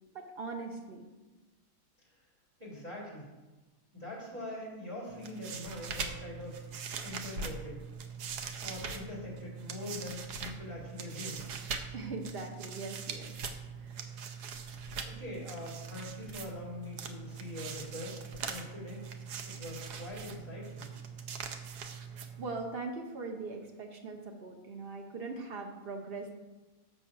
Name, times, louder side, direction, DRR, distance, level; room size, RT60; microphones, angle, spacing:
voice 1, 0.1-1.1 11.9-13.5 13.8-14.1 22.1-26.3, right 3 dB, 80° right, 3 dB, 0.5 m, -41 dB
voice 2, 2.6-3.3 3.9-6.6 7.0-7.8 8.6-11.4 14.0-19.0 19.5-20.9, left 1 dB, 20° right, -5 dB, 2.5 m, -43 dB
sound 1, 5.1-22.7, right 5 dB, 65° right, 1.1 m, -42 dB
7.1 x 6.9 x 5.8 m, 1.2 s
omnidirectional pair, 2.3 m